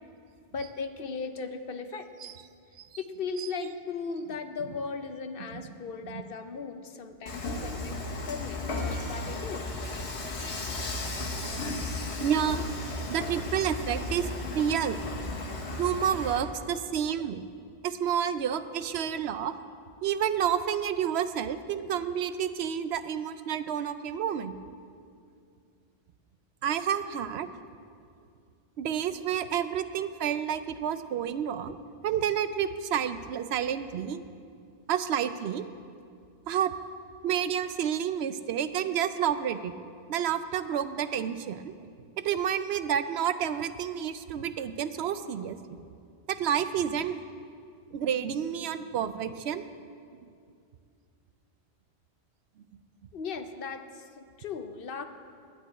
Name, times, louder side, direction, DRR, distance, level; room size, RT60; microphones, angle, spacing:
voice 1, 0.5-2.3 3.0-9.6 53.1-55.0, left 5 dB, 60° left, 8 dB, 0.9 m, -37 dB
voice 2, 5.4-5.7 6.0-6.2 12.2-12.7 13.1-15.0 15.8-17.4 17.8-19.5 20.0-24.5 26.6-27.5 28.8-31.8 32.0-34.2 34.9-35.7 36.5-36.7 37.2-39.7 40.1-41.7 42.2-45.8 46.3-47.2 47.9-49.7, right 9 dB, 75° right, 12 dB, 0.8 m, -30 dB
Dishes pots and pans / Frying (food), 7.3-16.4, left 2 dB, 75° left, 1.6 m, -34 dB
9.2 x 9.1 x 9.1 m, 2.4 s
omnidirectional pair, 1.1 m